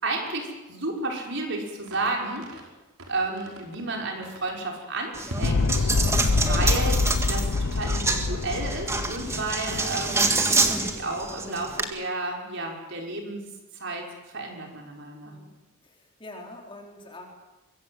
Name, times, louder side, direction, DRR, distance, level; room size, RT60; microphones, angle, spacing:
voice 1, 0.0-2.6 3.1-5.9 6.4-13.4 13.7-15.3, right 2 dB, 55° right, 1 dB, 5.6 m, -32 dB
sound 1, 1.8-2.7 3.0-3.8 4.2-4.6 5.3-5.7, equal, 80° right, 5.2 m, -39 dB
Coin (dropping), 5.1-11.8, right 3 dB, 15° right, 1.9 m, -27 dB
sound 2, 5.4-10.6, left 3 dB, 85° left, 0.8 m, -26 dB
voice 2, 15.2-15.6 15.8-17.3, left 1 dB, 25° left, 0 dB, 4.6 m, -45 dB
25.0 x 22.5 x 8.0 m, 1.1 s
head